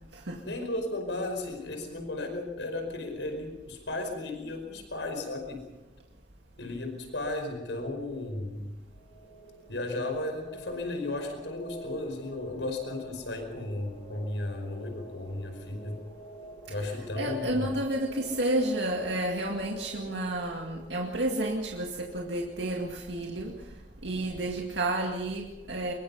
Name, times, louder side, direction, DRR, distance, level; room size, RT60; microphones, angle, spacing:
voice 1, 0.4-5.6 6.6-8.7 9.7-16.0 16.7-17.7, left 2 dB, 80° left, 4 dB, 5.2 m, -34 dB
sound 1, 8.8-23.2, right 1 dB, 40° left, 6.7 m, -49 dB
voice 2, 17.2-23.5 24.0-25.9, right 1 dB, 75° right, 0 dB, 2.2 m, -31 dB
23.5 x 22.5 x 5.5 m, 1.1 s
head